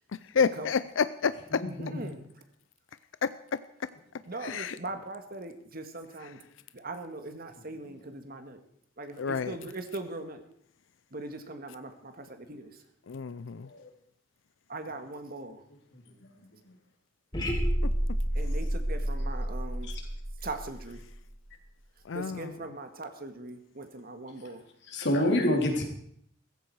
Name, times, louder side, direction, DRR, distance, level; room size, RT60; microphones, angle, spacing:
voice 1, 0.3-1.6 3.2-3.3 4.4-4.8 6.2-6.3 9.2-9.6 13.1-13.7 22.1-22.6, left 6 dB, 80° left, 14 dB, 0.5 m, -29 dB
voice 2, 1.5-2.2 13.6-13.9 15.9-16.0 19.9-20.0 24.9-25.8, left 1 dB, 60° left, 2 dB, 3.4 m, -28 dB
voice 3, 4.3-6.4 6.7-8.6 9.0-10.4 11.1-12.7 14.7-15.6 18.4-19.9 20.4-21.0 22.1-24.6, right 2 dB, 50° right, 7 dB, 1.8 m, -40 dB
sound 1, 17.3-21.4, equal, 25° left, 4.0 m, -30 dB
16.0 x 15.0 x 4.8 m, 0.67 s
head